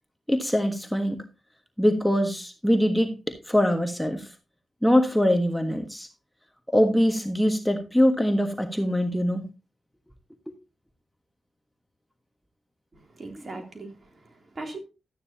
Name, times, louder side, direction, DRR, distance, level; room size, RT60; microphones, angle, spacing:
voice 1, 0.3-1.2 1.8-4.3 4.8-6.1 6.7-9.4, equal, 5° left, 1.5 m, -23 dB
voice 2, 12.9-14.8, right 2 dB, 45° right, 3.1 m, -40 dB
12.0 x 9.3 x 2.9 m
cardioid pair, 60°, 0 cm